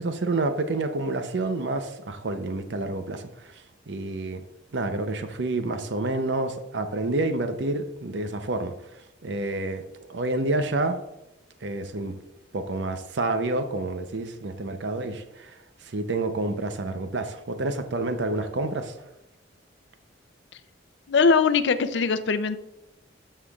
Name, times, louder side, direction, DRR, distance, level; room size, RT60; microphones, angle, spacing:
voice 1, 0.0-4.4 4.7-8.7 9.2-9.8 10.1-11.0 11.6-12.2 12.5-15.6 15.8-18.9, right 2 dB, 75° right, 8 dB, 0.7 m, -28 dB
voice 2, 21.1-22.6, left 5 dB, 75° left, 12 dB, 0.5 m, -21 dB
13.0 x 5.7 x 2.4 m, 0.92 s
head